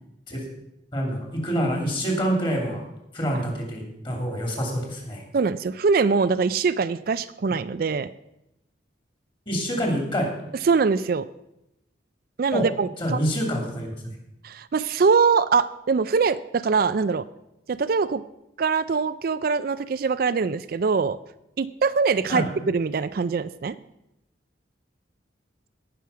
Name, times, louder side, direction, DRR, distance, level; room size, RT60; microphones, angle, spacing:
voice 1, 0.9-2.8 3.1-5.2 9.5-10.3 12.5-12.6 13.0-13.9 22.3-22.4, equal, 25° left, 1 dB, 3.0 m, -26 dB
voice 2, 5.3-8.1 10.6-11.3 12.4-13.2 14.4-17.2 17.7-18.2 18.6-21.2 21.6-23.8, right 5 dB, 50° right, 13 dB, 0.4 m, -23 dB
17.5 x 6.3 x 5.7 m, 0.86 s
head